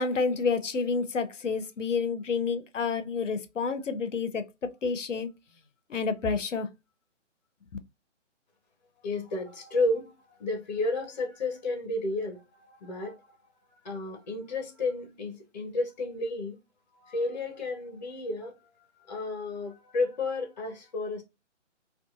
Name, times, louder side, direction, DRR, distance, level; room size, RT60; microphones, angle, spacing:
voice 1, 0.0-4.4 4.8-5.3 5.9-6.7, left 5 dB, 80° left, 0.6 m, -29 dB
voice 2, 9.0-13.4 13.8-16.6 16.9-21.2, left 2 dB, 35° left, 0.7 m, -32 dB
2.7 x 2.3 x 2.3 m
figure-of-eight pair, 140°, 37 cm